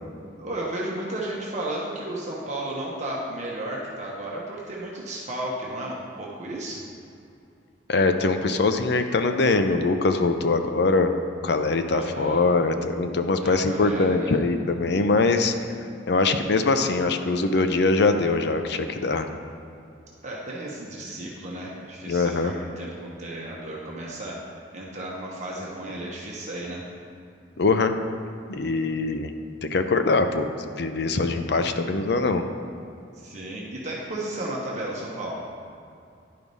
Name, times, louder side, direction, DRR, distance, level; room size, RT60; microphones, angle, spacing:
voice 1, 0.4-6.8 11.9-12.5 13.4-14.4 20.2-26.8 33.1-35.4, right 1 dB, 40° right, -4 dB, 1.1 m, -33 dB
voice 2, 7.9-11.1 11.4-15.5 16.1-19.3 22.1-22.5 27.6-27.9 28.5-29.3 29.6-32.4, left 3 dB, 65° left, 7 dB, 0.6 m, -22 dB
10.5 x 4.8 x 5.4 m, 2.6 s
head